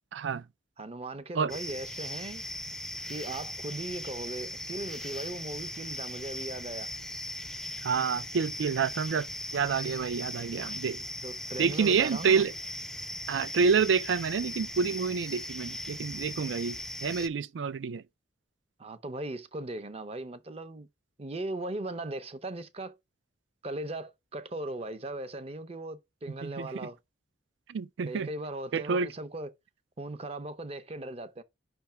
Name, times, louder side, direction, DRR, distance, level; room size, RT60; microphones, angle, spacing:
voice 1, 0.1-0.4 1.4-1.5 7.8-11.0 11.6-12.5 13.3-18.0 26.4-26.7 27.7-28.3 28.7-29.1, right 5 dB, 80° right, 0.4 m, -28 dB
voice 2, 0.8-2.4 3.1-6.9 11.2-12.4 18.8-20.9 21.2-23.0 23.6-27.0 28.1-29.5 30.0-31.4, right 2 dB, 35° right, 0.7 m, -38 dB
sound 1, 1.5-17.3, left 1 dB, 5° left, 0.3 m, -39 dB
5.5 x 3.4 x 5.7 m
head